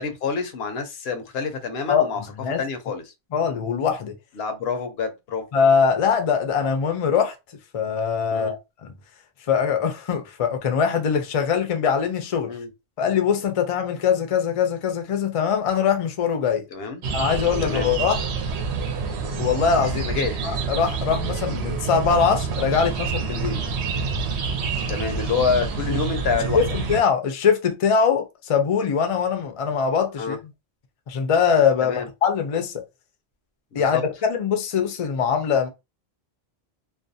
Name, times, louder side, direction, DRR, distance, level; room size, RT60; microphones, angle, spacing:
voice 1, 0.0-2.2 2.6-3.1 4.4-5.5 8.3-8.6 12.5-12.7 16.7-17.0 17.6-17.9 20.1-20.4 24.9-26.6 30.2-30.4 31.8-32.1 33.7-34.0, left 5 dB, 75° left, 0.8 m, -27 dB
voice 2, 1.9-2.6 3.3-4.1 5.5-7.3 7.7-8.9 9.5-12.5 13.0-16.6 17.1-18.2 19.4-20.1 20.4-23.6 25.9-26.0 26.5-30.4 31.1-32.8 33.7-35.7, left 6 dB, 45° left, 0.4 m, -22 dB
sound 1, 17.0-27.0, right 5 dB, 80° right, 0.8 m, -27 dB
2.4 x 2.1 x 2.6 m
omnidirectional pair, 1.1 m